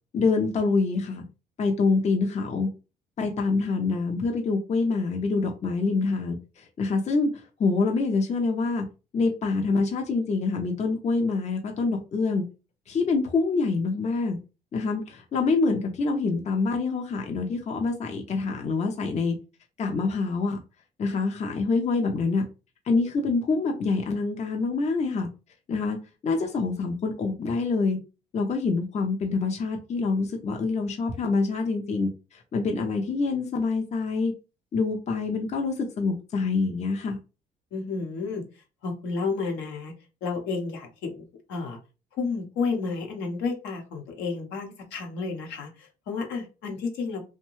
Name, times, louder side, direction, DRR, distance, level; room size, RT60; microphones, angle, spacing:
voice 1, 0.1-1.2 1.6-2.7 3.2-8.9 9.1-12.4 12.9-14.4 14.7-19.4 19.8-20.6 21.0-22.4 22.9-25.3 25.7-28.0 28.3-34.3 34.7-37.2, left 4 dB, 40° left, 3 dB, 0.6 m, -26 dB
voice 2, 37.7-38.4 38.8-39.9 40.2-41.8 42.1-47.2, left 4 dB, 75° left, 2 dB, 0.9 m, -31 dB
2.6 x 2.2 x 3.0 m, 0.31 s
supercardioid pair, 70°, 18 cm